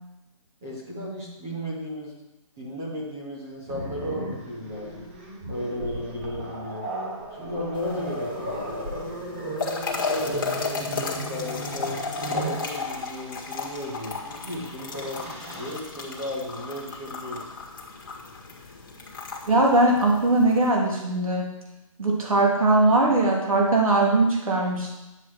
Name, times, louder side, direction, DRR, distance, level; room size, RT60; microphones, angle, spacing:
voice 1, 0.6-2.1 2.6-5.1 5.5-6.9 7.3-9.1 9.9-12.0 12.3-17.4, left 1 dB, 5° right, -4 dB, 0.5 m, -34 dB
Growling, 3.7-12.7 14.0-14.2 14.6-15.8, right 1 dB, 20° right, 1.1 m, -36 dB
sound 1, 7.7-20.7, left 4 dB, 35° left, 1.7 m, -34 dB
voice 2, 19.5-21.5 22.0-25.0, right 2 dB, 80° right, -1 dB, 3.4 m, -20 dB
10.0 x 7.6 x 4.6 m, 0.96 s
hypercardioid pair, 180°, 17 cm